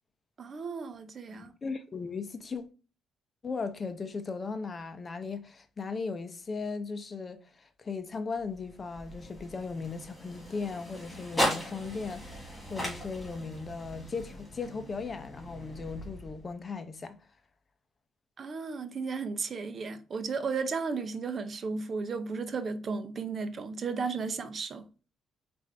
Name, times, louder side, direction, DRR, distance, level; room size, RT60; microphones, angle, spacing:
voice 1, 0.4-1.5 18.4-24.9, right 4 dB, 50° right, 0.6 m, -34 dB
voice 2, 1.3-2.7 3.4-12.4 12.7-17.2, left 4 dB, 35° left, 0.6 m, -37 dB
sound 1, 8.4-16.6, equal, 15° left, 2.4 m, -38 dB
4.9 x 2.5 x 3.3 m
cardioid pair, 90°, 0 cm